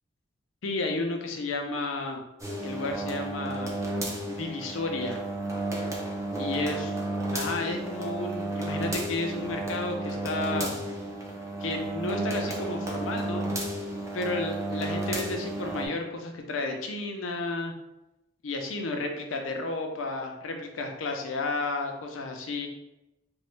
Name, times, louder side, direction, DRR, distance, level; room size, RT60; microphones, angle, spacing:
voice 1, 0.6-2.2 2.6-3.7 4.3-5.2 6.4-7.0 7.3-10.7 11.6-13.4 14.1-17.7 18.4-22.7, left 2 dB, 80° left, 3 dB, 0.5 m, -32 dB
sound 1, 2.4-15.9, right 2 dB, 15° right, 0.5 m, -32 dB
3.1 x 2.2 x 3.1 m, 0.93 s
head